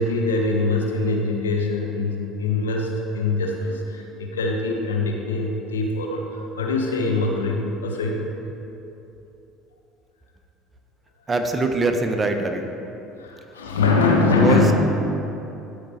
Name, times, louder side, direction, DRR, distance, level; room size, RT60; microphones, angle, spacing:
voice 1, 0.0-8.3 13.2-14.7, left 3 dB, 80° left, 1 dB, 0.9 m, -23 dB
voice 2, 11.3-12.7 14.3-14.6, right 3 dB, 25° right, 5 dB, 0.8 m, -22 dB
12.5 x 5.1 x 4.2 m, 2.9 s
figure-of-eight pair, 65°, 0 cm